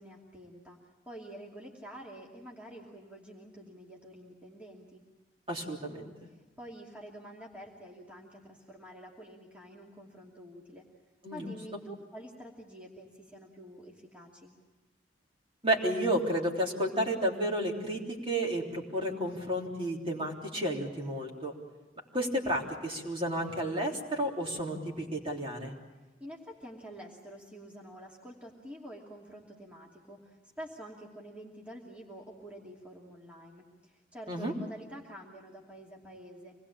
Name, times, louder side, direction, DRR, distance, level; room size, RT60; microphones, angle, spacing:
voice 1, 0.0-5.0 6.6-10.9 11.3-14.5 26.2-36.6, equal, 10° right, -3 dB, 2.7 m, -48 dB
voice 2, 5.5-6.1 11.2-11.5 15.6-21.5 22.1-25.7 34.3-34.5, right 1 dB, 30° right, -1 dB, 3.5 m, -31 dB
26.5 x 20.5 x 8.6 m, 1.1 s
head